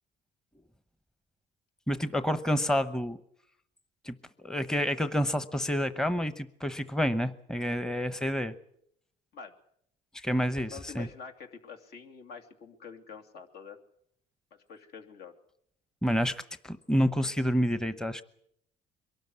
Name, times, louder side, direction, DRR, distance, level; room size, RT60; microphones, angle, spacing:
voice 1, 1.9-3.2 4.0-8.5 10.1-11.1 16.0-18.2, equal, 5° left, 12 dB, 0.9 m, -29 dB
voice 2, 10.7-13.8 14.5-15.3, left 6 dB, 70° left, 4 dB, 2.8 m, -46 dB
23.0 x 13.0 x 9.6 m, 0.71 s
cardioid pair, 110°, 17 cm